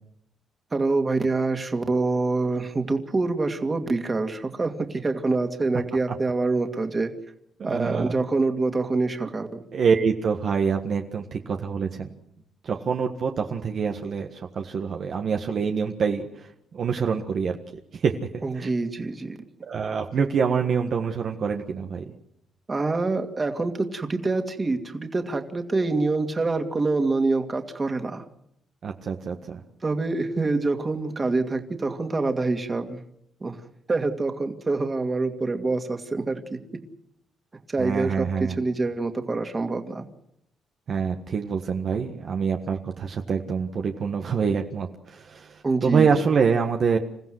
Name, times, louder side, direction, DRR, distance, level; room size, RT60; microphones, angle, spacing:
voice 1, 0.7-7.1 7.6-9.6 18.4-19.4 22.7-28.2 29.8-33.0 33.4-33.6 33.9-36.8 37.7-40.0 45.6-46.1, right 3 dB, 25° right, 6 dB, 2.4 m, -26 dB
voice 2, 7.6-8.2 9.7-12.1 12.6-17.6 17.9-18.7 19.6-22.0 28.8-29.6 37.8-38.6 40.9-47.0, right 6 dB, 55° right, 3 dB, 1.6 m, -26 dB
27.5 x 15.0 x 7.9 m, 0.75 s
cardioid pair, 90°, 0 cm